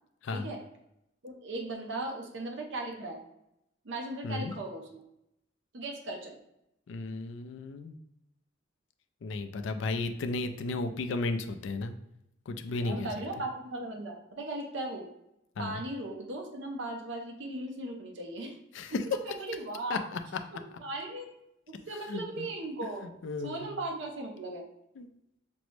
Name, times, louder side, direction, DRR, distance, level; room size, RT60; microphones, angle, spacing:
voice 1, 1.2-3.2 3.8-5.0 5.7-6.4 12.8-15.0 15.6-18.5 19.4-20.0 20.5-21.3 21.7-23.1 23.4-24.6, right 2 dB, 65° right, 2 dB, 0.6 m, -37 dB
voice 2, 6.9-8.0 9.2-11.9 12.5-13.1 15.6-15.8 18.7-19.0 19.9-20.4 22.1-22.5 23.2-23.7 25.0-25.1, left 3 dB, 70° left, 8 dB, 0.4 m, -34 dB
6.0 x 2.0 x 3.1 m, 0.82 s
head